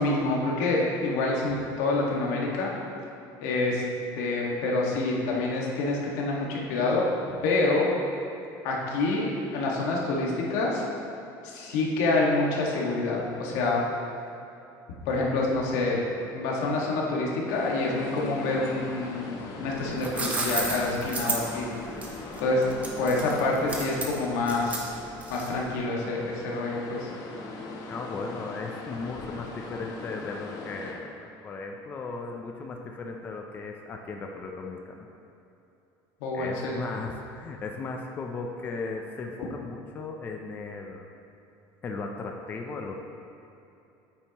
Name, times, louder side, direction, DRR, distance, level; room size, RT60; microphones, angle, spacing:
voice 1, 0.0-2.7 3.4-3.8 4.2-7.1 7.4-7.9 8.6-10.8 11.4-13.9 15.0-16.0 16.3-21.7 22.4-22.7 23.0-24.9 25.3-27.1 36.2-36.8, left 2 dB, 90° left, -3 dB, 1.7 m, -27 dB
sound 1, 17.5-30.9, left 3 dB, 40° left, 1.0 m, -40 dB
sound 2, 19.7-25.7, right 3 dB, 15° right, 0.9 m, -33 dB
voice 2, 27.9-35.1 36.3-41.1 41.8-43.0, left 4 dB, 20° left, 2 dB, 0.5 m, -36 dB
9.1 x 8.7 x 3.0 m, 2.8 s
cardioid pair, 175°, 9 cm